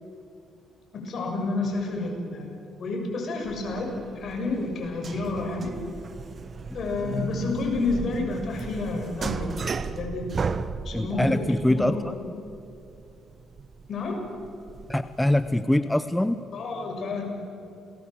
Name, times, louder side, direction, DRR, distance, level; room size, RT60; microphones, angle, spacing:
voice 1, 0.9-5.8 6.7-10.6 10.8-12.0 13.9-14.2 16.5-17.2, left 3 dB, 60° left, 1 dB, 6.6 m, -30 dB
sound 1, 3.4-15.6, right 5 dB, 40° right, 0.9 m, -36 dB
voice 2, 10.9-12.1 14.9-16.4, left 1 dB, 5° left, 11 dB, 0.8 m, -24 dB
28.0 x 20.0 x 7.6 m, 2.6 s
cardioid pair, 90°, 0 cm